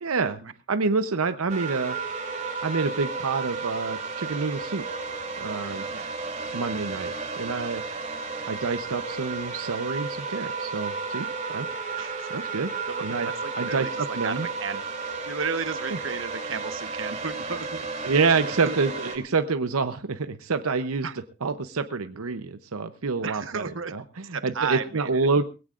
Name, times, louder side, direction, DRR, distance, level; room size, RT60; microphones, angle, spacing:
voice 1, 0.0-0.4 0.7-2.0 2.6-4.8 5.4-5.8 6.5-7.8 8.5-11.7 12.3-12.7 13.0-13.3 13.6-14.5 18.0-21.1 21.4-25.4, right 4 dB, 80° right, 9 dB, 0.8 m, -27 dB
sound 1, 1.5-19.2, right 4 dB, 35° right, 2.9 m, -33 dB
voice 2, 12.0-12.3 12.8-14.8 15.3-18.1 18.4-18.8 21.0-21.2 23.2-23.9 24.3-25.2, right 5 dB, 60° right, 10 dB, 1.1 m, -33 dB
21.0 x 16.5 x 2.5 m, 0.31 s
head